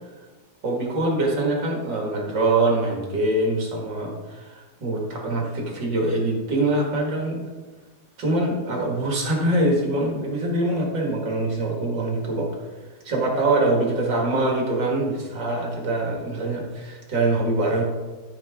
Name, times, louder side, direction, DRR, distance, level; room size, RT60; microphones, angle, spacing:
voice 1, 0.6-7.5 8.2-12.5 13.0-17.8, right 2 dB, 45° right, -1 dB, 1.7 m, -24 dB
13.0 x 6.5 x 3.6 m, 1.3 s
omnidirectional pair, 4.1 m